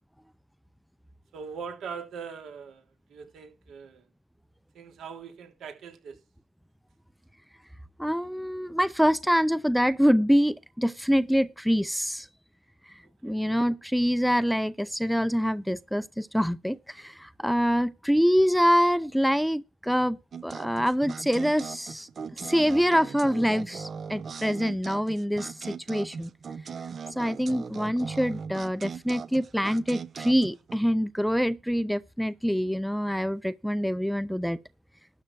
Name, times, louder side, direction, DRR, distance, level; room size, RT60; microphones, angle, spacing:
voice 1, 1.3-2.8 3.1-4.1 4.7-6.2 13.2-13.5, right 6 dB, 75° right, 3.3 m, -41 dB
voice 2, 8.0-12.3 13.2-22.1 22.4-26.3 27.2-34.6, equal, ahead, 0.6 m, -25 dB
sound 1, 20.3-30.8, right 6 dB, 45° right, 0.9 m, -39 dB
12.5 x 7.9 x 4.7 m
cardioid pair, 90°, 0 cm